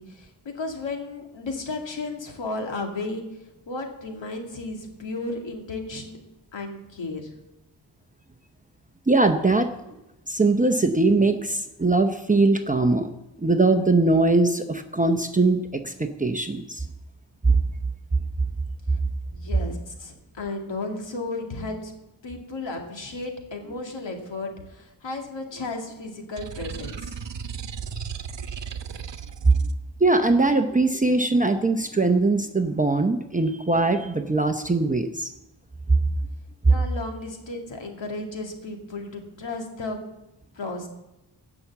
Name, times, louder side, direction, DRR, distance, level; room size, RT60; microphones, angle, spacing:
voice 1, 0.0-3.2 3.7-6.2 6.5-7.3 19.3-21.9 22.2-27.2 36.7-40.0 40.5-40.9, left 3 dB, 85° left, 2 dB, 2.3 m, -34 dB
voice 2, 9.1-9.7 10.3-13.1 13.4-16.9 17.4-17.6 30.0-35.3 35.9-36.0 36.7-36.8, right 3 dB, 20° right, 6 dB, 0.8 m, -21 dB
sound 1, 26.4-29.7, right 6 dB, 75° right, 1.0 m, -35 dB
16.5 x 6.0 x 7.3 m, 0.91 s
wide cardioid pair, 110°, 43 cm